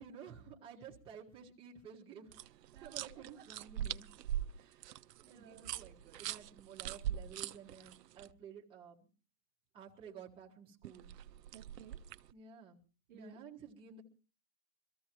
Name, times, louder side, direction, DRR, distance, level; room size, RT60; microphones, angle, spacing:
voice 1, 0.0-2.4 2.8-4.1 4.5-4.7 5.3-9.1 9.7-11.1 12.3-12.8 13.1-14.0, right 7 dB, 10° right, -2 dB, 1.4 m, -53 dB
sound 1, 2.3-8.3 10.8-12.3, right 11 dB, 80° right, 0.7 m, -42 dB
voice 2, 2.7-3.7 4.5-5.9 11.5-12.0 13.1-13.4, right 9 dB, 30° right, 0 dB, 0.9 m, -59 dB
23.5 x 14.0 x 3.0 m, 0.35 s
hypercardioid pair, 165°, 48 cm